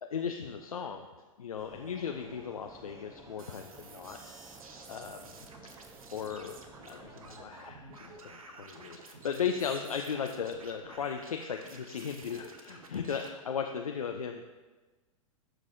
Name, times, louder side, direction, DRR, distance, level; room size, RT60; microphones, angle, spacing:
voice 1, 0.0-1.1 1.4-4.2 4.9-5.3 6.1-14.4, left 7 dB, 85° left, 4 dB, 0.5 m, -36 dB
sound 1, 1.6-7.4, right 3 dB, 15° right, 0.7 m, -53 dB
sound 2, 3.4-13.3, right 3 dB, 80° right, 0.8 m, -51 dB
12.0 x 4.7 x 2.6 m, 1.3 s
hypercardioid pair, 100°, 18 cm